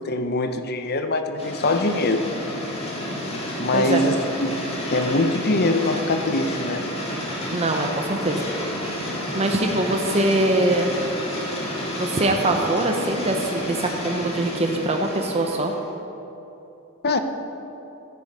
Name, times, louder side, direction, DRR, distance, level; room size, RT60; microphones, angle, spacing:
voice 1, 0.0-2.3 3.6-6.9 17.0-17.2, left 2 dB, 45° left, 8 dB, 0.8 m, -23 dB
sound 1, 1.4-15.9, equal, 30° left, 1.8 m, -30 dB
voice 2, 3.7-4.0 7.5-8.5 9.3-11.0 12.0-15.7, right 1 dB, 30° right, 3 dB, 0.8 m, -23 dB
13.0 x 9.6 x 5.4 m, 2.9 s
head